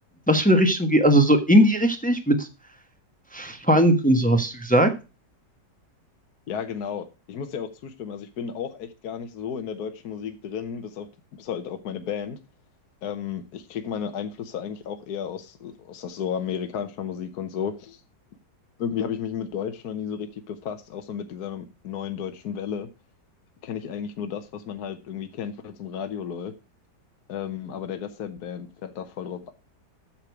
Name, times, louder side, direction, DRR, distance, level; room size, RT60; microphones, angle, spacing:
voice 1, 0.3-2.5 3.3-4.9, equal, 5° left, 0.9 m, -19 dB
voice 2, 6.5-11.1 11.3-12.4 13.0-18.0 18.8-22.9 23.6-26.5 27.3-29.5, left 8 dB, 65° left, 1.4 m, -33 dB
8.7 x 6.8 x 4.7 m
omnidirectional pair, 1.9 m